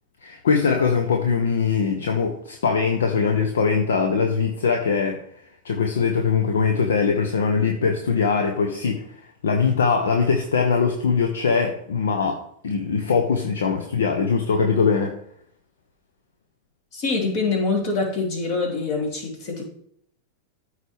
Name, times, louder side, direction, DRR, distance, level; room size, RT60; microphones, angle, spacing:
voice 1, 0.2-5.2 5.6-15.1, left 5 dB, 65° left, 1.0 m, -22 dB
voice 2, 16.9-19.6, left 3 dB, 45° left, 3.2 m, -25 dB
13.5 x 4.8 x 3.5 m
figure-of-eight pair, 90°, 0 cm